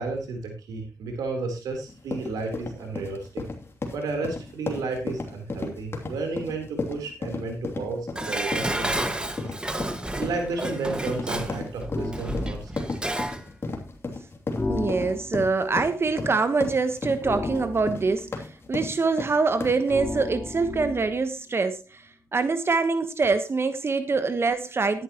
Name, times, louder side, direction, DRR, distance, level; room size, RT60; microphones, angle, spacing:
voice 1, 0.0-3.4 3.9-9.5 10.1-12.7, right 3 dB, 85° right, 3 dB, 3.7 m, -32 dB
sound 1, 1.9-19.9, left 3 dB, 40° left, 2.9 m, -34 dB
Dishes pots and pans, 8.1-13.4 13.8-13.9, right 1 dB, 15° right, 1.7 m, -31 dB
sound 2, 11.9-12.3 14.6-15.5 17.2-18.3 19.9-21.3, left 3 dB, 25° left, 0.8 m, -33 dB
voice 2, 14.7-22.0 22.3-25.0, right 4 dB, 40° right, 11 dB, 1.2 m, -24 dB
13.5 x 10.5 x 3.0 m, 0.28 s
cardioid pair, 65°, 6 cm